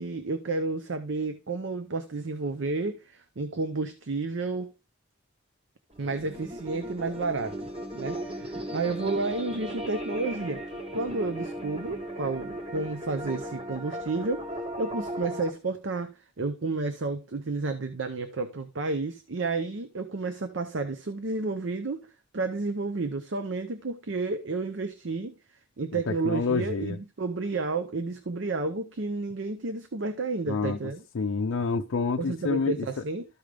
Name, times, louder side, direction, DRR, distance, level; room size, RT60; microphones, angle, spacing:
voice 1, 0.0-4.7 6.0-7.6 7.9-10.6 10.9-14.5 14.8-22.1 22.3-25.3 25.8-31.0 32.2-33.3, right 3 dB, 65° right, 0.6 m, -31 dB
sound 1, 5.9-15.5, right 1 dB, 25° right, 1.4 m, -36 dB
voice 2, 25.9-27.0 30.5-30.8 31.1-32.9, left 4 dB, 75° left, 0.5 m, -28 dB
13.0 x 5.1 x 3.4 m
head